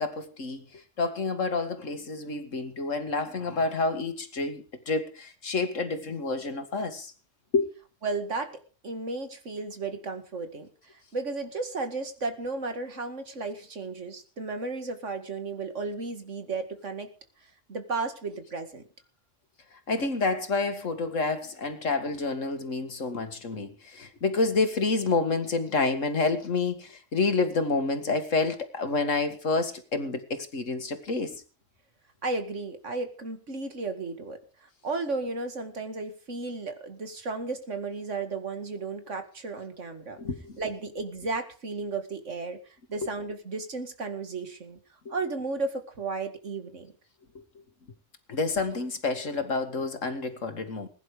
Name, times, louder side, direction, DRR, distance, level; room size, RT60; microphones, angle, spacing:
voice 1, 0.0-7.1 7.5-7.7 19.9-31.4 40.2-40.6 45.1-45.2 48.3-50.9, left 3 dB, 85° left, 2.3 m, -29 dB
voice 2, 8.0-10.7 11.1-17.1 17.7-18.8 32.2-34.4 34.8-40.2 40.6-42.6 42.9-44.8 45.1-46.9, right 3 dB, 75° right, 2.5 m, -34 dB
21.0 x 10.5 x 5.1 m
omnidirectional pair, 1.3 m